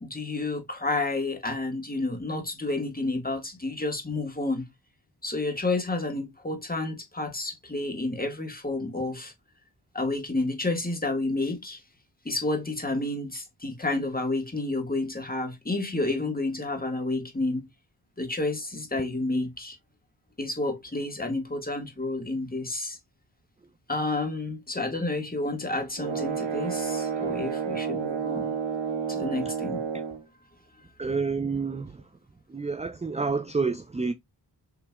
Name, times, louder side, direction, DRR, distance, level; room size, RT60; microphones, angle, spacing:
voice 1, 0.0-4.7 5.2-9.3 9.9-11.8 12.2-17.6 18.2-19.8 20.4-23.0 23.9-28.5 29.1-29.8 30.8-30.9, left 2 dB, 20° left, 1.7 m, -30 dB
sound 1, 26.0-30.2, right 6 dB, 75° right, 1.0 m, -30 dB
voice 2, 31.0-32.0 32.5-34.1, right 4 dB, 15° right, 0.4 m, -29 dB
6.0 x 3.3 x 2.2 m
cardioid pair, 50°, 45 cm